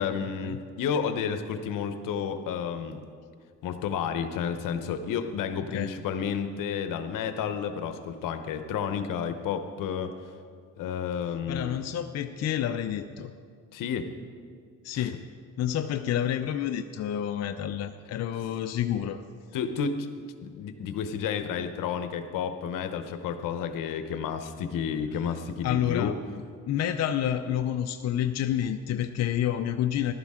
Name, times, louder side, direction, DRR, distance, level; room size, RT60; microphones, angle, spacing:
voice 1, 0.0-3.1 3.6-10.2 10.8-11.8 13.7-14.1 14.9-15.1 19.5-20.1 20.4-26.1, left 7 dB, 75° left, 9 dB, 0.9 m, -31 dB
voice 2, 11.5-13.3 14.8-15.2 15.6-19.2 25.6-26.2 26.7-30.1, left 10 dB, 55° left, 7 dB, 0.5 m, -29 dB
15.0 x 12.0 x 3.7 m, 2.1 s
cardioid pair, 85°, 32 cm